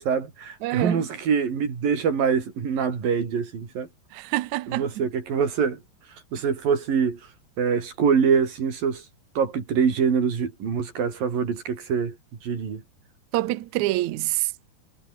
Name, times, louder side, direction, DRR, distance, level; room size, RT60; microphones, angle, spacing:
voice 1, 0.0-3.9 4.7-5.8 6.3-7.2 7.6-9.1 9.4-12.2 12.4-12.8, right 6 dB, 60° right, 5.7 m, -24 dB
voice 2, 0.6-1.0 4.1-4.9 13.3-14.7, right 17 dB, 85° right, 1.6 m, -26 dB
omnidirectional pair, 4.6 m